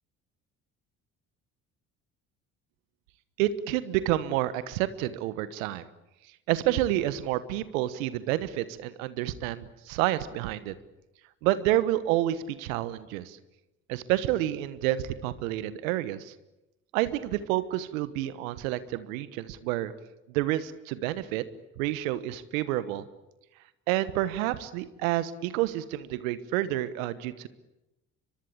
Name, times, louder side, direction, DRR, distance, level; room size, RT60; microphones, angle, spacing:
voice 1, 3.4-5.8 6.5-10.7 11.4-13.4 13.9-16.3 16.9-19.9 20.3-21.4 21.8-23.0 23.9-27.5, right 14 dB, 80° right, 15 dB, 1.3 m, -29 dB
24.0 x 23.5 x 8.7 m, 0.95 s
hypercardioid pair, 55°, 40 cm